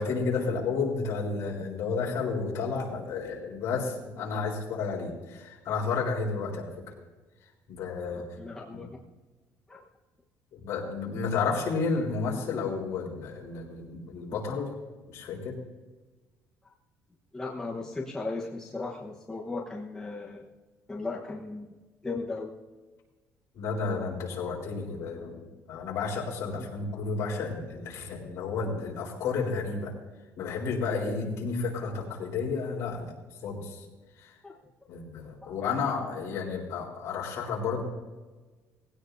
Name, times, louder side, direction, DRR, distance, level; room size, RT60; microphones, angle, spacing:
voice 1, 0.0-6.8 7.7-8.3 8.7-8.8 10.5-14.7 15.1-15.6 23.5-25.4 25.7-29.9 30.4-33.1 33.4-33.9 34.2-34.4 34.9-37.8, left 4 dB, 55° left, -1 dB, 4.0 m, -31 dB
voice 2, 8.4-8.9 9.7-9.8 17.3-20.5 20.9-22.5 26.5-26.7 34.4-34.6 35.4-35.5, left 3 dB, 10° left, -3 dB, 1.1 m, -37 dB
19.5 x 16.5 x 2.7 m, 1.3 s
cardioid pair, 165°, 6 cm